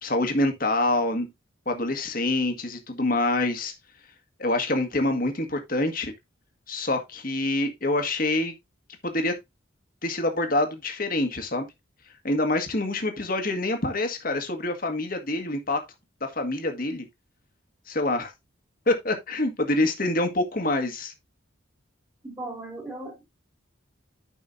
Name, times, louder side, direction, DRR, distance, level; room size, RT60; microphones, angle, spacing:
voice 1, 0.0-1.3 1.6-3.7 4.4-6.1 6.7-8.5 9.0-9.4 10.0-11.7 12.2-15.8 16.2-17.0 17.9-18.3 18.9-21.1, left 2 dB, 45° left, 1.7 m, -26 dB
voice 2, 22.2-23.2, right 2 dB, 15° right, 2.5 m, -37 dB
13.5 x 5.5 x 2.6 m
head